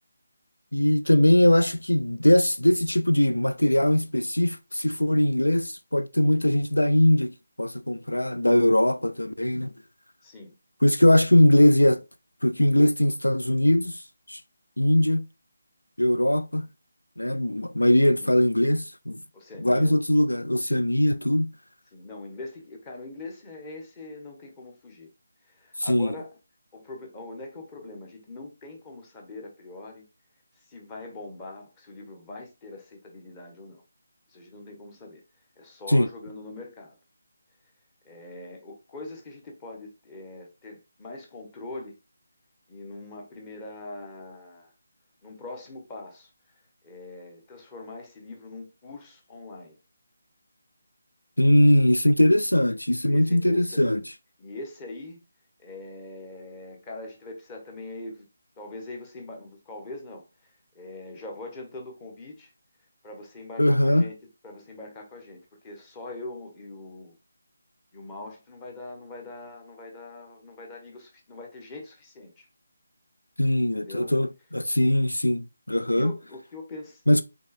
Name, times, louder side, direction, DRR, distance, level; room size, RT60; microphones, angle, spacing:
voice 1, 0.7-9.7 10.8-12.0 12.4-14.0 14.3-14.4 14.8-15.3 16.0-16.7 17.2-19.2 19.6-21.5 25.8-26.1 35.9-36.1 51.4-54.0 63.6-64.1 73.4-76.1 77.1-77.2, left 1 dB, 85° left, 0.4 m, -21 dB
voice 2, 10.2-10.5 18.0-18.3 19.3-20.0 21.9-25.1 25.4-26.4 26.7-30.1 30.5-33.8 34.3-35.2 35.6-37.0 38.0-42.0 42.7-44.7 45.2-46.3 46.8-49.8 53.1-53.9 54.4-55.2 55.6-58.3 58.6-62.5 63.0-64.2 64.4-67.1 67.9-72.5 73.7-74.1 75.9-77.0, left 2 dB, 15° left, 1.2 m, -42 dB
5.2 x 4.1 x 2.4 m
figure-of-eight pair, 155°, 0 cm